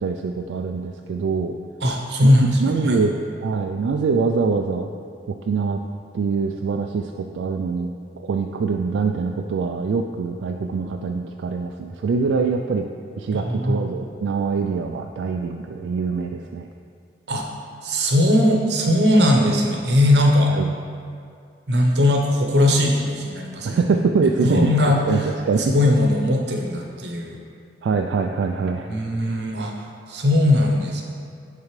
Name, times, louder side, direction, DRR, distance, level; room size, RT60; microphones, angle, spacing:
voice 1, 0.0-1.6 2.2-3.2 3.4-4.9 5.3-5.8 6.1-12.9 13.2-16.7 20.4-20.7 23.6-24.7 25.1-25.6 27.8-28.9, right 4 dB, 90° right, 3 dB, 0.3 m, -24 dB
voice 2, 1.8-3.0 13.3-13.9 17.3-17.4 17.8-20.5 21.7-23.8 24.4-25.0 25.6-27.4 28.9-31.0, left 1 dB, 65° right, 1 dB, 0.8 m, -19 dB
10.5 x 3.8 x 3.2 m, 2.3 s
head